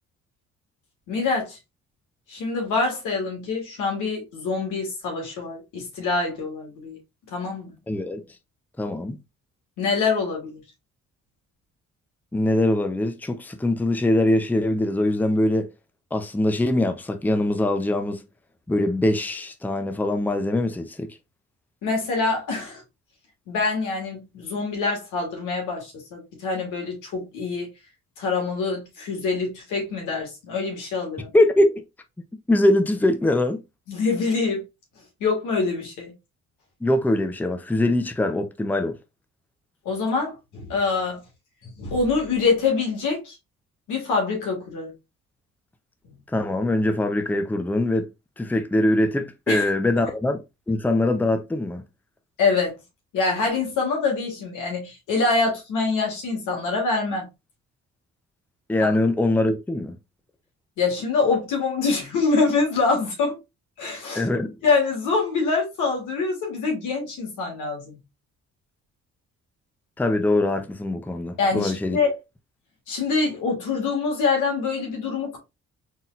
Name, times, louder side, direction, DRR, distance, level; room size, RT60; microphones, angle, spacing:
voice 1, 1.1-1.6 2.3-7.0 7.3-7.7 9.8-10.6 21.8-22.8 23.5-27.7 28.2-31.3 33.9-34.6 35.2-36.1 39.9-41.2 41.6-43.3 43.9-44.9 49.5-49.7 52.4-52.8 53.1-57.3 58.8-58.9 60.8-63.4 63.8-64.3 64.6-68.0 71.4-72.1 72.9-75.4, left 4 dB, 85° left, 2.0 m, -25 dB
voice 2, 7.9-8.2 8.8-9.2 12.3-15.7 16.1-18.2 18.7-21.1 31.3-31.8 32.5-33.6 36.8-39.0 46.3-48.1 48.4-50.4 50.7-51.8 58.7-60.0 64.1-64.6 70.0-72.0, left 1 dB, 5° left, 0.6 m, -22 dB
4.1 x 3.9 x 2.5 m
cardioid pair, 90°, 30 cm